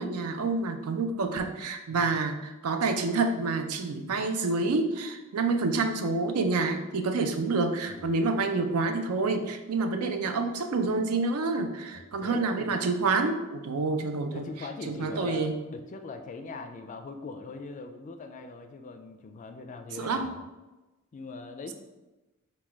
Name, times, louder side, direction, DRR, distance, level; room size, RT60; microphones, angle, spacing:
voice 1, 0.0-14.4 14.9-15.6 20.0-20.3, right 3 dB, 85° right, 7 dB, 0.5 m, -28 dB
voice 2, 11.9-12.8 14.3-20.4 21.1-21.7, left 3 dB, 35° left, 6 dB, 0.3 m, -41 dB
4.0 x 2.2 x 4.5 m, 1.1 s
head